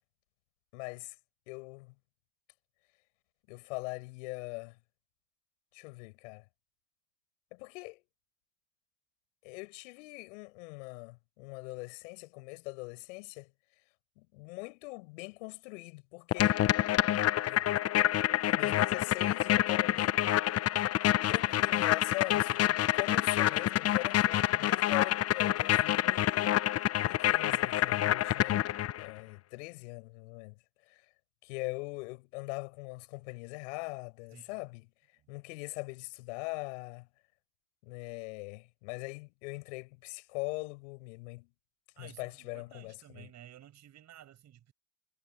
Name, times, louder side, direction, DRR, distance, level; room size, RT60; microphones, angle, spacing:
voice 1, 0.7-1.1 1.5-1.9 3.5-4.8 5.7-6.4 7.5-8.0 9.4-13.5 14.2-16.6 17.5-17.7 18.4-20.2 20.6-20.7 21.3-28.6 28.9-30.5 30.9-31.0 31.4-34.9 35.3-37.1 37.8-41.5 42.0-43.3, left 27 dB, 70° left, 7.5 m, -41 dB
sound 1, 16.3-29.1, left 13 dB, 40° left, 1.1 m, -27 dB
voice 2, 42.0-44.7, right 11 dB, 45° right, 7.9 m, -54 dB
hypercardioid pair, 80°, 38 cm